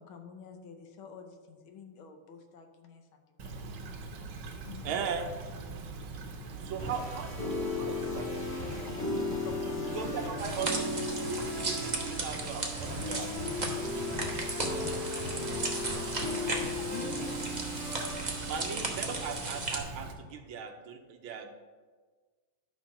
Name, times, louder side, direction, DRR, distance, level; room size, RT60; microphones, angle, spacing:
voice 1, 0.0-3.0 3.4-3.6 4.6-5.0 8.9-10.2 16.9-17.1, left 6 dB, 75° left, 5 dB, 1.7 m, -47 dB
Stream / Trickle dribble, 3.4-20.1, right 3 dB, 65° right, 1.5 m, -43 dB
voice 2, 4.8-5.3 6.6-8.5 9.9-13.5 13.9-15.0 18.5-21.6, right 6 dB, 80° right, 6 dB, 1.7 m, -39 dB
sound 1, 6.6-19.4, left 2 dB, 30° left, 2.5 m, -36 dB
sound 2, 10.4-19.8, right 3 dB, 35° right, 0.7 m, -37 dB
voice 3, 16.2-17.7, left 2 dB, 50° left, -1 dB, 2.1 m, -49 dB
11.0 x 4.4 x 5.9 m, 1.4 s
omnidirectional pair, 2.3 m